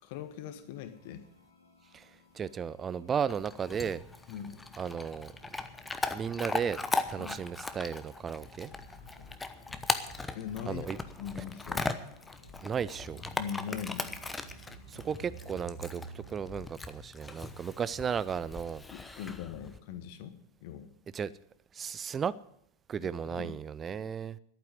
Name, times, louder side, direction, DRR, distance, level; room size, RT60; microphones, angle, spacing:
voice 1, 0.0-1.3 4.3-4.6 7.2-7.4 10.3-10.9 11.2-11.9 13.4-14.1 18.9-20.9 23.0-23.6, left 8 dB, 50° left, 1.4 m, -41 dB
sound 1, 0.7-16.7, right 1 dB, 70° left, 2.6 m, -53 dB
voice 2, 2.3-4.0 4.8-5.3 6.1-6.8 7.1-8.7 10.7-11.0 12.6-13.2 14.9-18.8 21.1-21.3 21.7-22.3 22.9-24.4, right 7 dB, 20° right, 0.5 m, -34 dB
Chewing mastication / Dog, 3.3-19.8, left 3 dB, 10° left, 0.9 m, -38 dB
11.5 x 9.1 x 9.2 m
figure-of-eight pair, 90°, 0 cm